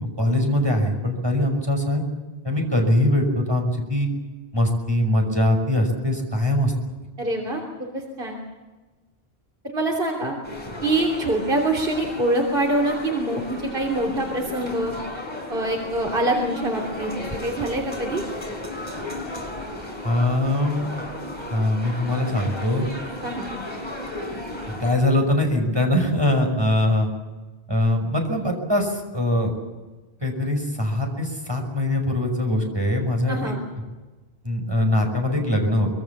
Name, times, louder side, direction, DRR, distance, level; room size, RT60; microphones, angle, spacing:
voice 1, 0.0-2.0 2.4-4.1 4.5-6.7 20.0-20.9 21.5-22.9 24.7-27.1 27.7-29.5 30.2-33.6 34.4-35.9, left 1 dB, 25° right, 3 dB, 5.8 m, -22 dB
voice 2, 7.2-8.4 9.6-10.4 10.8-15.0 15.5-17.1 17.4-18.2 23.2-23.5 33.3-33.6, right 1 dB, 60° right, 1 dB, 3.4 m, -25 dB
sound 1, 10.4-24.9, left 1 dB, 25° left, 4.5 m, -34 dB
25.0 x 23.0 x 7.2 m, 1.2 s
omnidirectional pair, 1.1 m